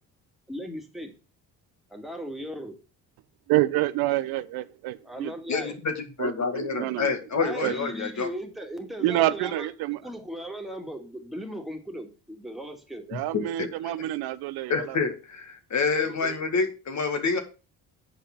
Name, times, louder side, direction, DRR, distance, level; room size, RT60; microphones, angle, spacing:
voice 1, 0.5-1.1 1.9-2.8 5.0-5.8 7.4-9.7 10.0-13.1 16.0-16.3, equal, ahead, 2.3 m, -37 dB
voice 2, 3.5-5.3 6.2-7.7 9.0-10.0 13.1-15.0, right 16 dB, 85° right, 0.7 m, -28 dB
voice 3, 5.5-8.3 13.1-13.7 14.7-17.4, left 4 dB, 50° left, 2.0 m, -28 dB
7.4 x 5.1 x 6.0 m
supercardioid pair, 80°, 37 cm